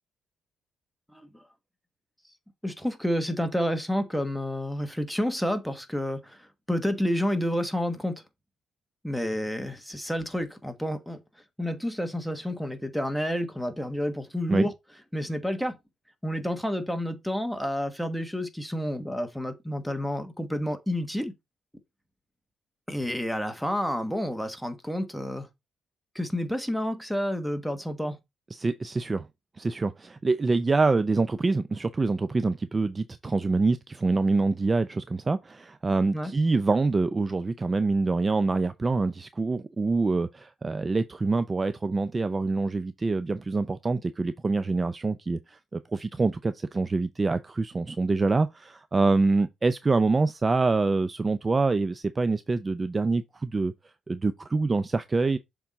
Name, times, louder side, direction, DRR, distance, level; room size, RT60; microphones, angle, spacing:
voice 1, 1.1-1.4 2.6-8.2 9.0-11.2 11.6-14.7 15.1-15.8 16.2-21.3 22.9-25.5 26.1-28.2 36.1-36.3, equal, ahead, 1.3 m, -30 dB
voice 2, 28.5-29.3 29.6-53.7 54.1-55.4, right 3 dB, 25° right, 0.4 m, -25 dB
7.0 x 3.7 x 4.1 m
cardioid pair, 90°, 0 cm